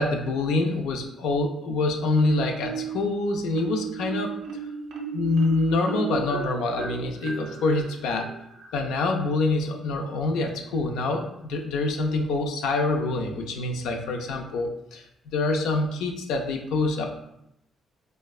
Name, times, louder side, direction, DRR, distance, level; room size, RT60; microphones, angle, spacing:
voice 1, 0.0-4.3 5.1-8.3 8.7-17.2, left 2 dB, 90° left, 3 dB, 0.4 m, -26 dB
Marimba xylophone, 2.1-3.1 3.5-9.0, right 6 dB, 85° right, 0.6 m, -35 dB
4.2 x 2.1 x 2.3 m, 0.81 s
cardioid pair, 90°, 0 cm